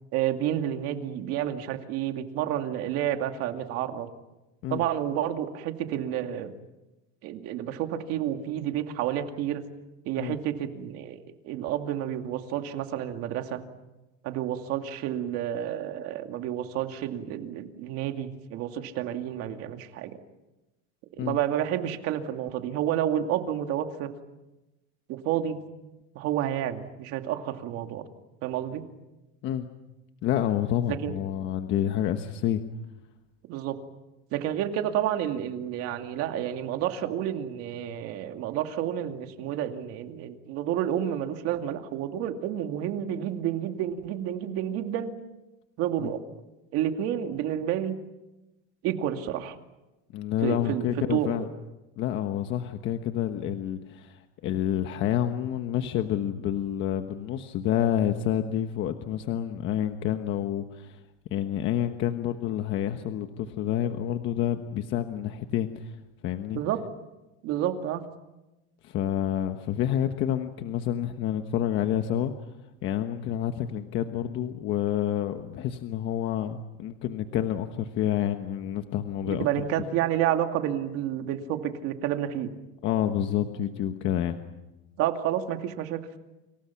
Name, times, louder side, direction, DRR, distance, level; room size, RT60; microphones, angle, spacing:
voice 1, 0.1-4.1 4.7-6.5 7.2-9.6 10.0-13.6 14.2-20.2 21.1-24.1 25.1-25.6 26.1-28.0 28.4-28.8 30.9-31.1 33.5-33.8 34.3-45.1 45.8-46.2 46.7-47.9 48.8-49.5 50.4-51.5 66.5-66.8 67.4-68.0 79.3-82.5 85.0-86.2, right 11 dB, 45° right, 6 dB, 2.5 m, -30 dB
voice 2, 30.2-32.6 46.0-46.1 50.1-51.5 52.0-61.0 61.3-66.0 66.2-66.6 68.8-72.3 72.8-79.6 82.8-84.4, left 10 dB, 35° left, 7 dB, 1.2 m, -28 dB
29.5 x 27.5 x 5.9 m, 1.0 s
supercardioid pair, 160°, 34 cm